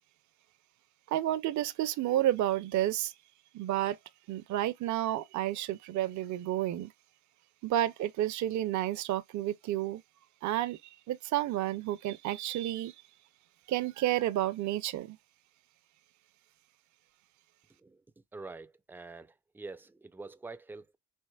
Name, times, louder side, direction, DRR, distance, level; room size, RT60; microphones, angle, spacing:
voice 1, 1.1-3.1 3.5-4.0 4.3-6.9 7.6-10.0 10.4-10.8 11.1-12.9 13.7-15.2, right 13 dB, 70° right, 0.5 m, -31 dB
voice 2, 18.3-21.0, right 3 dB, 5° right, 0.3 m, -46 dB
4.5 x 2.9 x 2.2 m
cardioid pair, 90°, 30 cm